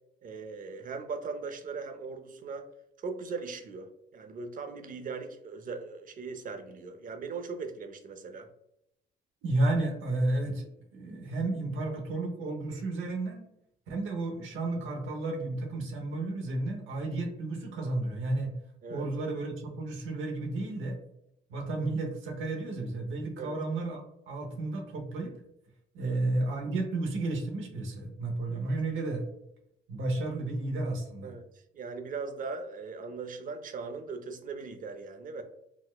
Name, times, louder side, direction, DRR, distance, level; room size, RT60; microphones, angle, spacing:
voice 1, 0.2-2.7 3.0-8.5 18.8-19.1 23.4-23.6 26.0-26.2 28.5-28.6 31.2-31.4 31.7-35.4, right 4 dB, 45° right, 6 dB, 0.5 m, -39 dB
voice 2, 9.4-13.4 13.9-18.5 18.9-21.0 21.5-25.3 25.9-29.2 29.9-31.4, right 2 dB, 85° right, 2 dB, 0.8 m, -32 dB
4.1 x 2.0 x 2.2 m, 0.79 s
cardioid pair, 90°, 20 cm